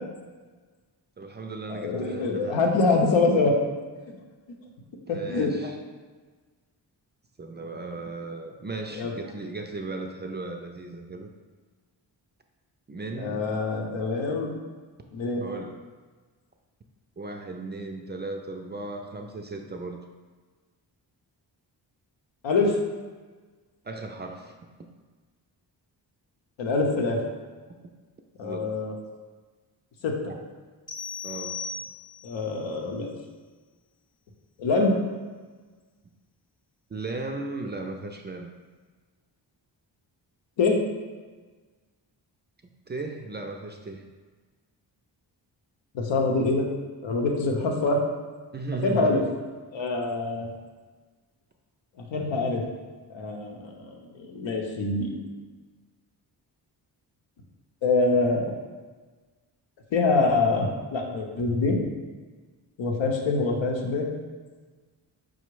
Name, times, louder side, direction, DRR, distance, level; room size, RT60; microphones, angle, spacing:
voice 1, 1.2-2.7 5.1-5.8 7.4-11.3 12.9-13.5 15.3-15.8 17.2-20.0 23.8-24.6 28.4-28.7 30.3-30.4 31.2-31.6 36.9-38.5 42.9-44.0 48.5-49.3, right 2 dB, 25° right, 3 dB, 0.3 m, -36 dB
voice 2, 1.7-3.5 5.1-5.5 8.9-9.1 13.2-14.5 15.1-15.5 22.4-22.8 26.6-27.2 28.4-29.0 30.0-30.3 32.2-33.1 34.6-35.0 40.6-40.8 45.9-46.7 47.0-48.0 48.8-49.2 49.7-50.5 52.1-52.6 53.1-55.1 57.8-58.5 59.9-61.8 62.8-64.1, left 3 dB, 85° left, 1 dB, 0.8 m, -25 dB
sound 1, 30.9-32.4, left 4 dB, 20° left, 0.7 m, -36 dB
4.9 x 2.1 x 4.6 m, 1.4 s
cardioid pair, 65°, 44 cm